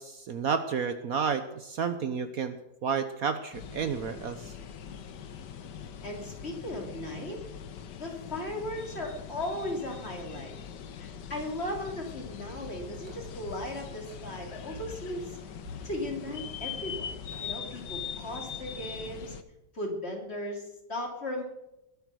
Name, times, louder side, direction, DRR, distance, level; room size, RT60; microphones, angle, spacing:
voice 1, 0.0-2.6 2.8-4.5, right 6 dB, 60° right, 10 dB, 1.2 m, -31 dB
sound 1, 3.5-19.4, left 8 dB, 75° left, 1.6 m, -42 dB
voice 2, 6.0-7.4 8.0-10.6 11.0-15.4 15.8-17.1 17.4-19.4 19.7-21.4, left 1 dB, 35° left, 2 dB, 3.3 m, -37 dB
sound 2, 12.4-17.6, equal, 75° right, 3.1 m, -50 dB
21.0 x 8.4 x 6.3 m, 0.91 s
omnidirectional pair, 1.9 m